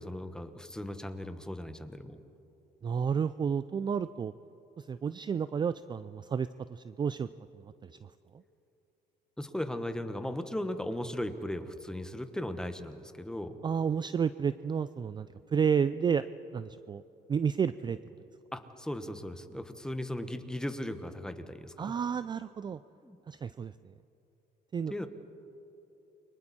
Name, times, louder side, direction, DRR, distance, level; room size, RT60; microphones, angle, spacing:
voice 1, 0.0-2.2 9.4-13.6 18.5-21.9 23.0-23.2 24.9-25.1, left 1 dB, 5° left, 8 dB, 1.3 m, -37 dB
voice 2, 2.8-4.3 4.8-7.3 7.8-8.1 13.6-15.3 15.5-16.2 16.5-17.0 17.3-18.0 21.8-22.8 23.3-23.7 24.7-24.9, right 7 dB, 25° right, 14 dB, 0.4 m, -31 dB
29.5 x 24.0 x 4.3 m, 2.9 s
cardioid pair, 110°, 17 cm